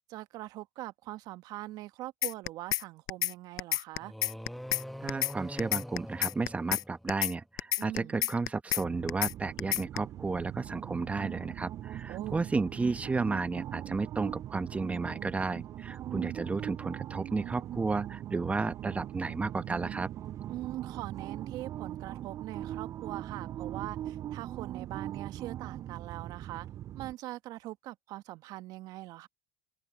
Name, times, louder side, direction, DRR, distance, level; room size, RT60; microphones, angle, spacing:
voice 1, 0.1-4.1 7.8-8.2 12.1-12.4 20.5-26.7 26.9-29.3, right 16 dB, 60° right, 1.4 m, -42 dB
sound 1, 2.2-2.8 3.1-3.3 3.6-4.8 5.1-5.3 5.6-6.8 7.1-7.3 7.6-8.8 9.1-9.3 9.6-10.0, left 15 dB, 55° left, 0.8 m, -29 dB
sound 2, 4.0-7.3, equal, ahead, 1.5 m, -44 dB
voice 2, 5.0-20.1, right 3 dB, 20° right, 1.2 m, -33 dB
sound 3, 8.8-27.1, right 12 dB, 45° right, 0.4 m, -40 dB
open air
hypercardioid pair, 80°, 7 cm